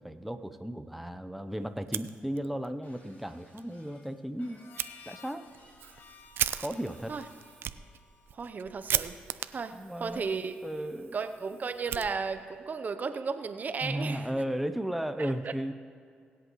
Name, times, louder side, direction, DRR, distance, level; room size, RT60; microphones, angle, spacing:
voice 1, 0.0-4.6 5.1-5.5 6.6-7.2 9.7-10.4 10.6-11.2 11.9-12.1 13.8-15.7, right 1 dB, ahead, 9 dB, 0.7 m, -35 dB
Fire, 1.8-2.7 3.0-3.1 3.5-3.6 4.8-4.9 5.5-12.6, right 10 dB, 75° right, 0.4 m, -37 dB
Shatter, 2.8-7.6, left 1 dB, 55° left, 3.1 m, -61 dB
Harmonica, 4.5-9.1, left 6 dB, 80° left, 0.9 m, -56 dB
voice 2, 8.3-9.2 9.5-9.7 10.0-10.6 11.1-14.3 15.2-15.5, right 5 dB, 50° right, 9 dB, 0.7 m, -34 dB
22.5 x 8.1 x 3.1 m, 2.3 s
cardioid pair, 60°, 4 cm